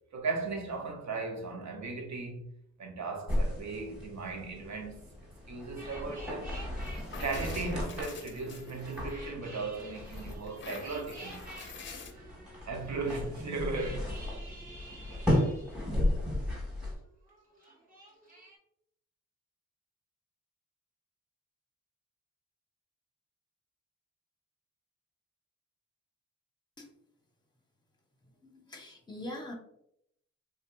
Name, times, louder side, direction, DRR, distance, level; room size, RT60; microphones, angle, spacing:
voice 1, 0.1-2.5 2.8-5.1 5.5-6.5 7.2-11.4 12.2-12.3 12.7-14.1, right 3 dB, 65° right, 0.8 m, -37 dB
sound 1, 3.3-16.9, left 1 dB, 5° right, 1.3 m, -35 dB
sound 2, 5.8-16.9 17.2-18.6, right 2 dB, 30° right, 0.9 m, -51 dB
sound 3, 6.8-9.3 9.8-12.1, left 5 dB, 40° left, 0.5 m, -48 dB
voice 2, 28.5-29.5, left 1 dB, 15° left, 0.8 m, -42 dB
3.5 x 2.7 x 2.2 m
cardioid pair, 90°, 30 cm